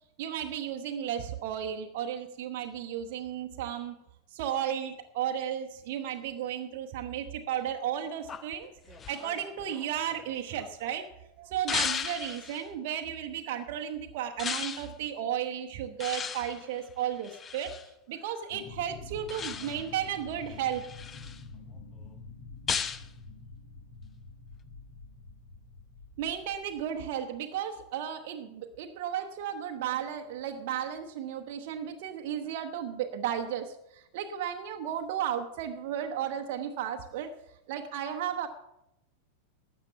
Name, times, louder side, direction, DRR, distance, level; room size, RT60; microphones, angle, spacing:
voice 1, 0.2-3.9 4.3-8.7 9.1-11.1 11.4-17.7 18.1-20.8 26.2-37.3 37.7-38.5, right 9 dB, 50° right, 4 dB, 0.9 m, -34 dB
sound 1, 8.3-10.9 11.7-12.7 14.4-14.9 16.0-17.9 19.3-20.0 20.5-21.4 22.7-23.1, left 7 dB, 20° left, 0.7 m, -36 dB
sound 2, 18.5-27.1, left 3 dB, 55° left, 2.0 m, -47 dB
12.5 x 8.0 x 6.9 m, 0.86 s
figure-of-eight pair, 90°, 0 cm